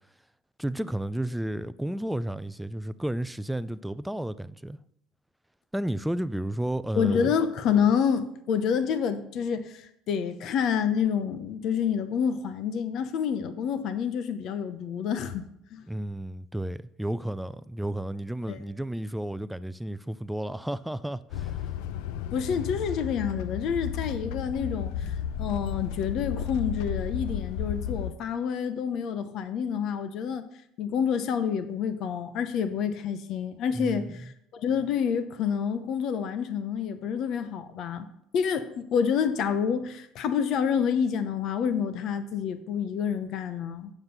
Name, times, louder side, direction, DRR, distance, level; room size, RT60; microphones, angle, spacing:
voice 1, 0.6-4.8 5.7-7.3 15.9-21.6 33.7-34.3, right 1 dB, 5° right, 0.4 m, -32 dB
voice 2, 7.0-15.4 15.7-15.9 18.5-18.6 22.3-30.5 30.8-38.1 38.3-43.9, left 7 dB, 55° left, 0.8 m, -28 dB
sound 1, 21.3-28.1, left 9 dB, 80° left, 0.6 m, -33 dB
7.8 x 7.4 x 6.7 m
cardioid pair, 115°, 0 cm